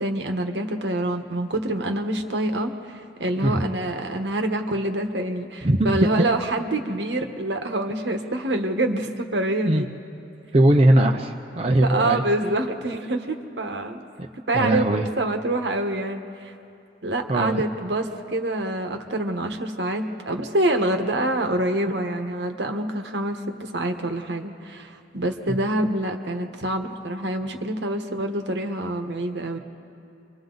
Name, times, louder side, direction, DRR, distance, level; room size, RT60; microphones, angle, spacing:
voice 1, 0.0-9.9 11.8-14.0 14.5-14.8 15.2-16.5 17.0-29.6, right 1 dB, 75° right, 5 dB, 1.3 m, -26 dB
voice 2, 5.6-6.1 9.6-9.8 10.5-12.2 14.5-15.1 17.3-17.6 25.5-25.6, right 1 dB, 35° right, 2 dB, 0.8 m, -20 dB
29.0 x 24.0 x 4.0 m, 2.7 s
head